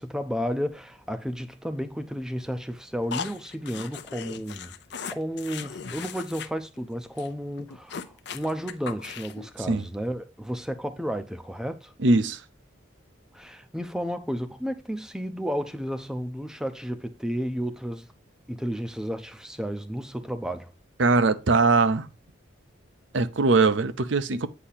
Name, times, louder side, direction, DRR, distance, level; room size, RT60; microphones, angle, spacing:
voice 1, 0.0-4.7 5.1-11.9 13.3-18.1 18.5-20.7, equal, 5° right, 0.5 m, -32 dB
sound 1, 3.1-6.5 6.8-6.9 7.2-7.3 7.6-9.5, left 6 dB, 60° left, 0.6 m, -38 dB
voice 2, 12.0-12.4 21.0-22.1 23.1-24.5, right 3 dB, 70° right, 0.7 m, -21 dB
8.4 x 2.8 x 5.6 m
head